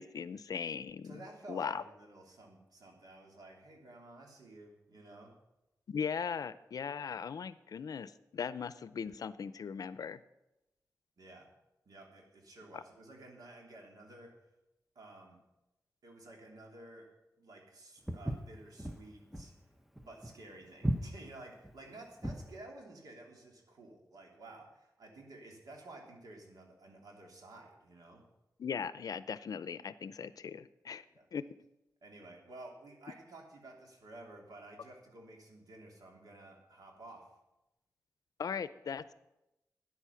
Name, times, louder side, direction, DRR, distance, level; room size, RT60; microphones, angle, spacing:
voice 1, 0.0-1.2 1.5-1.8 5.9-10.2 28.6-31.0 31.3-31.4 38.4-39.1, left 6 dB, 75° left, 15 dB, 0.5 m, -39 dB
voice 2, 1.0-5.3 11.2-11.5 11.9-14.3 14.9-15.4 16.0-17.1 17.4-19.5 20.0-28.2 31.1-31.3 32.0-37.2, right 2 dB, 75° right, 1 dB, 2.9 m, -53 dB
Walk footsteps, 18.1-22.5, right 1 dB, 5° right, 0.8 m, -37 dB
13.0 x 9.6 x 5.8 m, 0.94 s
wide cardioid pair, 120°, 6 cm